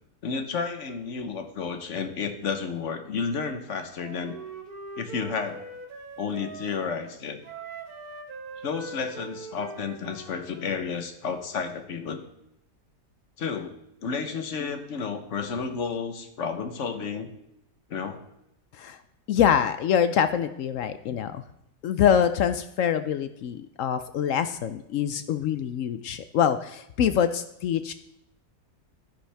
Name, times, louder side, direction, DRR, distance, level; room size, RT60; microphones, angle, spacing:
voice 1, 0.2-4.4 5.0-5.6 6.2-7.4 8.6-12.2 13.4-13.7 14.0-17.3 17.9-18.2, left 5 dB, 55° left, 7 dB, 1.2 m, -31 dB
Wind instrument woodwind instrument, 4.0-7.0 7.4-10.9, right 3 dB, 65° right, 1.5 m, -42 dB
voice 2, 19.3-21.4 21.8-27.9, left 8 dB, 70° left, 10 dB, 0.8 m, -25 dB
11.5 x 10.0 x 3.4 m, 0.81 s
omnidirectional pair, 1.7 m